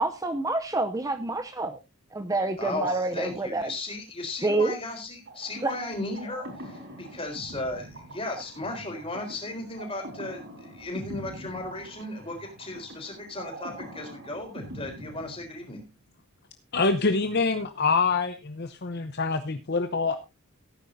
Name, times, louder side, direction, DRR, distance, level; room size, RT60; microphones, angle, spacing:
voice 1, 0.0-1.8 2.1-3.7 4.4-4.7 5.6-5.7, right 2 dB, 15° right, 8 dB, 0.6 m, -27 dB
voice 2, 2.6-15.8, left 2 dB, 25° left, 3 dB, 4.0 m, -36 dB
sound 1, 5.3-15.9, right 1 dB, 55° right, 4.6 m, -43 dB
voice 3, 16.7-20.2, left 4 dB, 45° left, 8 dB, 0.8 m, -25 dB
17.0 x 9.7 x 2.7 m, 0.25 s
head